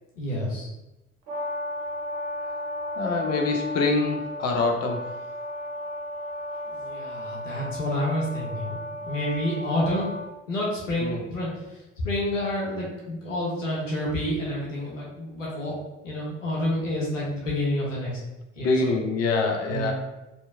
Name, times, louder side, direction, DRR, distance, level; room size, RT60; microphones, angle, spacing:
voice 1, 0.2-0.7 6.7-10.1 10.5-11.8 12.0-15.7 16.0-18.1 18.6-18.9 19.7-19.9, left 1 dB, 90° left, -5 dB, 0.6 m, -29 dB
Brass instrument, 1.3-10.3, left 1 dB, 55° right, 0.8 m, -34 dB
voice 2, 3.0-5.1 11.0-11.2 18.6-19.9, left 3 dB, 40° left, 3 dB, 0.5 m, -25 dB
2.7 x 2.5 x 2.3 m, 0.94 s
figure-of-eight pair, 45°, 37 cm